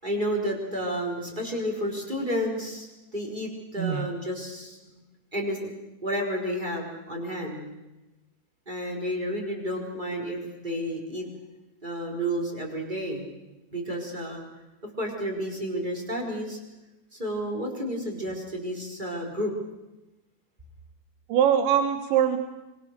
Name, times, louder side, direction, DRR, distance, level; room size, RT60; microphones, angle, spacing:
voice 1, 0.0-4.8 5.3-5.7 6.0-7.7 8.7-11.3 11.8-13.3 13.7-14.4 15.0-16.6 17.1-19.5, equal, 10° right, 0 dB, 4.2 m, -31 dB
voice 2, 3.8-4.1 21.3-22.4, right 9 dB, 85° right, 7 dB, 3.7 m, -22 dB
26.5 x 26.0 x 6.7 m, 1.0 s
omnidirectional pair, 5.0 m